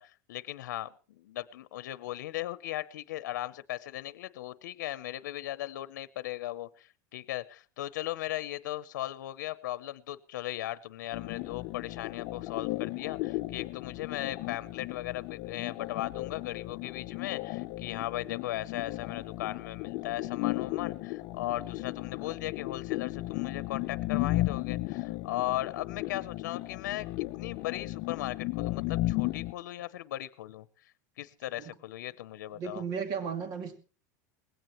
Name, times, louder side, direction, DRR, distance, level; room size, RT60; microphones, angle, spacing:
voice 1, 0.0-30.9 31.2-32.8, left 15 dB, 90° left, 0.8 m, -37 dB
sound 1, 11.1-29.5, left 18 dB, 45° left, 0.7 m, -35 dB
voice 2, 32.5-33.8, right 6 dB, 45° right, 2.4 m, -35 dB
20.0 x 17.0 x 3.1 m
supercardioid pair, 155°, 10 cm